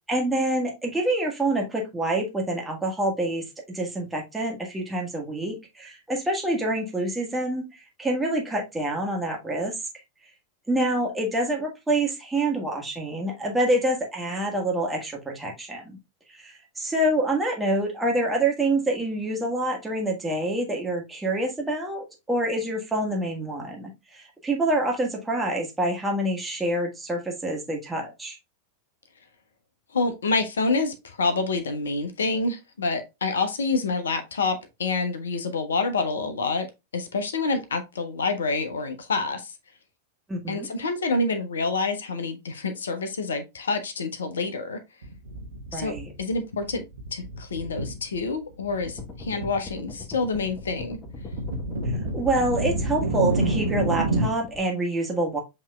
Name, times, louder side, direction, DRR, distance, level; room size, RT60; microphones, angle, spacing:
voice 1, 0.1-9.7 10.7-16.0 16.3-28.4 40.3-40.7 45.7-46.1 52.1-55.4, right 1 dB, 10° right, 1.4 m, -26 dB
voice 2, 29.9-36.7 36.9-39.5 40.5-44.8 45.7-46.8 47.1-51.0, left 3 dB, 70° left, 0.6 m, -27 dB
sound 1, 45.0-46.3 46.6-48.3 48.6-49.5 49.8-54.3, right 2 dB, 70° right, 1.0 m, -29 dB
sound 2, 48.9-54.6, left 4 dB, 20° left, 1.1 m, -42 dB
7.3 x 2.9 x 2.3 m
figure-of-eight pair, 90°, 0 cm